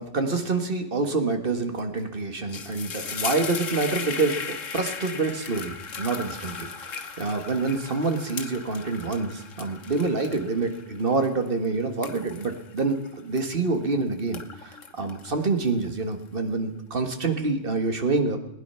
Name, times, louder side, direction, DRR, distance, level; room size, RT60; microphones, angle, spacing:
voice 1, 0.0-18.4, right 3 dB, 45° right, 7 dB, 1.8 m, -27 dB
sound 1, 1.8-2.0 2.3-13.8 14.2-16.1, left 5 dB, 85° left, 1.6 m, -37 dB
20.0 x 10.0 x 5.7 m, 0.86 s
omnidirectional pair, 1.3 m